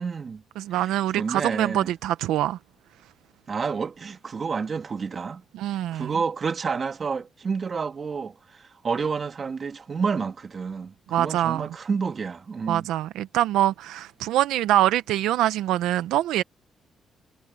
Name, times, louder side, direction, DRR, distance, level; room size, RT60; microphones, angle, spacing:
voice 1, 0.0-0.4 1.2-1.9 3.5-5.4 5.9-12.9, right 5 dB, 40° right, 1.7 m, -29 dB
voice 2, 0.6-2.6 5.5-6.1 11.1-11.7 12.7-16.4, right 13 dB, 90° right, 0.6 m, -24 dB
cardioid pair, 90°, 0 cm